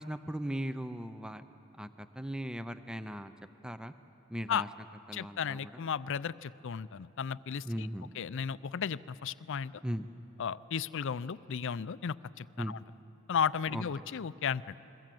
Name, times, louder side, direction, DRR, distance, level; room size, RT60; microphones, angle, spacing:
voice 1, 0.0-1.4 1.8-1.9 2.2-3.3 3.6-3.9 4.3-4.7 5.1-5.8 7.6-8.1 9.8-10.1 12.6-12.8 13.7-13.8, equal, 5° right, 10 dB, 0.6 m, -38 dB
voice 2, 5.1-7.9 8.1-9.7 10.4-12.8 13.3-14.8, left 7 dB, 65° left, 17 dB, 0.5 m, -34 dB
28.5 x 22.0 x 7.7 m, 2.9 s
head